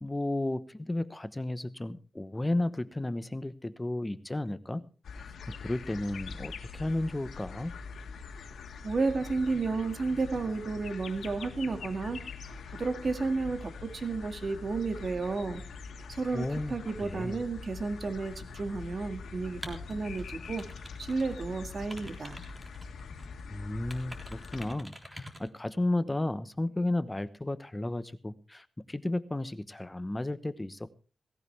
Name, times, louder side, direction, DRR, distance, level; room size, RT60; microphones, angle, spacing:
voice 1, 0.0-4.8 5.5-7.7 16.3-17.4 23.5-30.9, left 1 dB, 15° left, 14 dB, 1.0 m, -33 dB
sound 1, 5.0-24.7, left 5 dB, 90° left, 1.8 m, -44 dB
voice 2, 8.8-12.2 12.7-15.6 16.1-20.7 21.0-22.5, right 3 dB, 50° right, 8 dB, 2.0 m, -32 dB
sound 2, 19.6-21.5 21.7-23.4 23.9-25.5, equal, 10° right, 3.6 m, -47 dB
17.5 x 17.0 x 3.3 m, 0.35 s
wide cardioid pair, 90°, 0 cm